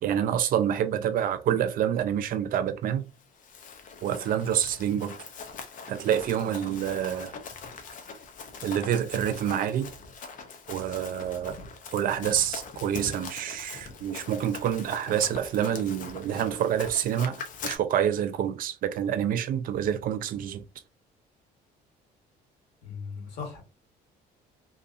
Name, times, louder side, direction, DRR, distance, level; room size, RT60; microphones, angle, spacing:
voice 1, 0.0-3.1 4.0-5.2 5.9-7.3 8.6-9.9 10.7-11.6 11.9-20.6, right 9 dB, 55° right, 0.4 m, -27 dB
Run, 3.2-17.8, left 5 dB, 50° left, 0.6 m, -42 dB
voice 2, 22.8-23.6, left 5 dB, 85° left, 1.3 m, -38 dB
2.8 x 2.5 x 2.4 m
cardioid pair, 110°, 17 cm